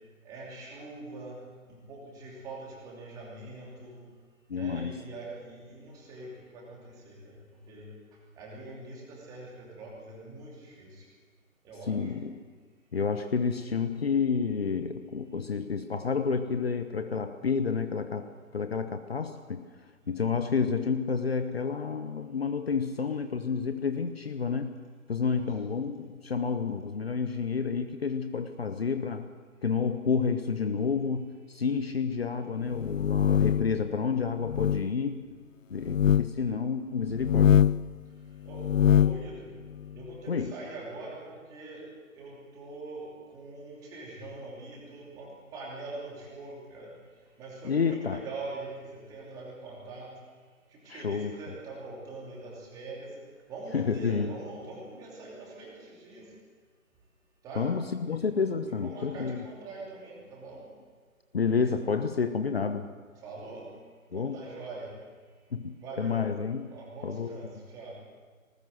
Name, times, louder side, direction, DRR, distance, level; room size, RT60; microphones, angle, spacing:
voice 1, 0.2-4.0 4.5-7.4 7.7-7.9 8.4-11.1 11.6-12.1 20.1-20.2 25.4-25.5 35.7-35.9 38.4-39.5 39.9-41.8 42.1-46.9 47.4-50.1 50.7-53.2 53.5-56.3 57.4-57.7 58.1-58.2 58.8-60.7 63.2-63.7 64.1-64.9 65.8-66.3 66.6-68.0, right 2 dB, 10° right, -3 dB, 2.8 m, -43 dB
voice 2, 4.5-5.0 11.8-12.4 12.9-19.6 20.1-24.8 25.1-29.3 29.6-35.3 35.7-37.7 40.3-40.5 47.6-48.2 50.9-51.4 53.7-54.4 57.5-59.5 61.3-62.9 64.1-64.4 65.5-66.7 67.0-67.4, left 5 dB, 45° left, 9 dB, 1.1 m, -30 dB
sound 1, 32.8-33.7 34.5-34.8 35.8-36.3 37.1-37.9 38.5-39.2, left 8 dB, 65° left, 0.6 m, -23 dB
19.5 x 19.5 x 7.8 m, 1.5 s
figure-of-eight pair, 160°, 42 cm